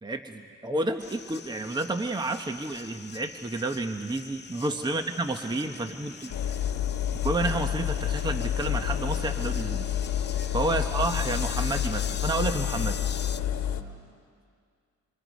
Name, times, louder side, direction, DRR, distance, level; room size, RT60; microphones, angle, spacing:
voice 1, 0.0-6.1 7.2-9.9 10.5-13.0, right 2 dB, 15° right, 6 dB, 1.0 m, -30 dB
sound 1, 1.0-13.4, left 8 dB, 35° left, 0.6 m, -43 dB
voice 2, 4.5-4.8 5.4-6.9 10.3-10.7 13.6-14.2, right 1 dB, 70° right, -2 dB, 7.7 m, -53 dB
Engine, 6.3-13.8, left 10 dB, 70° left, 1.3 m, -29 dB
28.0 x 26.5 x 5.2 m, 2.2 s
cardioid pair, 90°, 30 cm